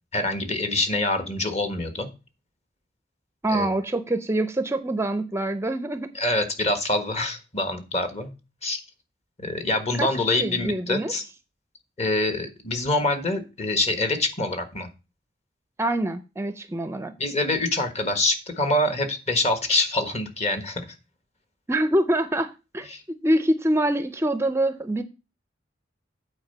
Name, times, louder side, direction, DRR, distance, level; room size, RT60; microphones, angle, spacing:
voice 1, 0.1-2.1 3.5-3.7 6.1-8.3 8.6-8.8 9.4-11.2 12.0-14.9 17.2-20.8 22.9-23.0, left 2 dB, 35° left, 1.4 m, -25 dB
voice 2, 3.4-6.1 9.9-11.1 15.8-17.2 21.7-22.9 23.2-25.0, right 1 dB, 15° right, 0.5 m, -25 dB
8.7 x 4.6 x 6.7 m
head